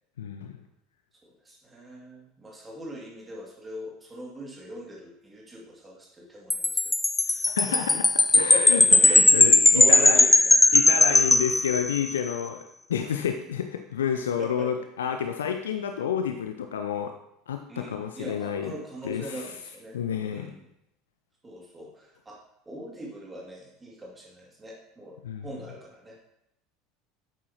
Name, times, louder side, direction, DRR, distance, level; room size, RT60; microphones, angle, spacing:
voice 1, 0.2-0.6 7.5-8.1 8.4-10.2 10.7-12.6 12.9-17.1 17.5-18.7 19.0-19.5 19.9-20.5 25.2-25.5, left 8 dB, 70° left, 6 dB, 0.6 m, -29 dB
voice 2, 1.2-6.9 7.2-8.0 8.3-9.2 9.7-10.6 14.4-14.7 17.7-20.0 20.3-20.6 21.4-22.4 22.7-26.2, right 1 dB, 15° right, -3 dB, 2.5 m, -40 dB
Wind chime, 6.5-12.2, left 2 dB, 10° left, 0.4 m, -19 dB
11.0 x 8.5 x 3.0 m, 0.80 s
figure-of-eight pair, 70°, 0 cm